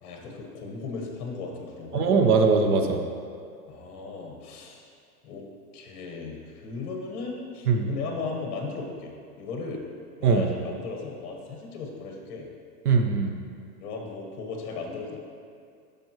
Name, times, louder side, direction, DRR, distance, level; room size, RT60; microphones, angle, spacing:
voice 1, 0.0-2.1 3.7-4.9 5.2-5.4 5.7-9.1 9.4-9.8 10.2-12.5 13.8-15.2, left 4 dB, 30° left, 1 dB, 1.3 m, -36 dB
voice 2, 1.9-3.0 7.7-7.9 10.2-10.5 12.9-13.3, right 5 dB, 70° right, 5 dB, 0.9 m, -21 dB
12.0 x 5.3 x 3.1 m, 2.2 s
hypercardioid pair, 145°, 46 cm